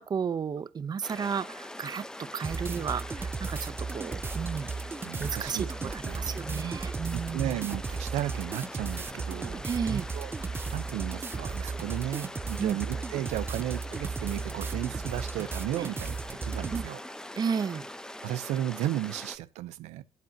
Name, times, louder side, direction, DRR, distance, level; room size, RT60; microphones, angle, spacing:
voice 1, 0.0-4.7 5.2-7.6 9.6-10.1 12.6-12.8 15.8-15.9 16.7-16.8 17.4-17.9, right 6 dB, 40° right, 0.9 m, -33 dB
sound 1, 1.0-19.4, left 1 dB, 5° left, 0.9 m, -43 dB
sound 2, 2.4-16.9, right 4 dB, 20° right, 0.4 m, -35 dB
voice 2, 5.0-6.7 7.1-17.0 18.2-20.0, right 13 dB, 90° right, 0.8 m, -35 dB
12.0 x 8.3 x 2.9 m
cardioid pair, 95°, 11 cm